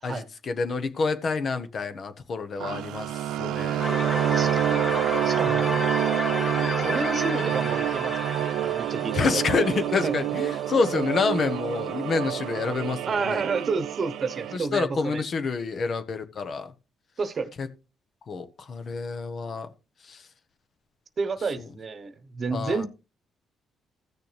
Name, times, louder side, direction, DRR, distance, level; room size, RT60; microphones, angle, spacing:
voice 1, 0.0-3.1 3.4-3.9 5.5-5.7 9.1-13.4 14.5-16.7 17.6-17.7 18.3-19.7 20.1-20.2 22.5-22.9, left 4 dB, 50° left, 1.1 m, -28 dB
sound 1, 2.6-14.6, right 12 dB, 85° right, 0.4 m, -27 dB
sound 2, 3.8-10.7, left 2 dB, 30° left, 0.9 m, -32 dB
voice 2, 4.3-4.6 5.2-5.6 6.7-9.5 10.0-10.2 13.1-15.2 17.2-17.5 21.2-22.9, right 4 dB, 45° right, 1.0 m, -30 dB
15.0 x 6.7 x 3.3 m
cardioid pair, 90°, 0 cm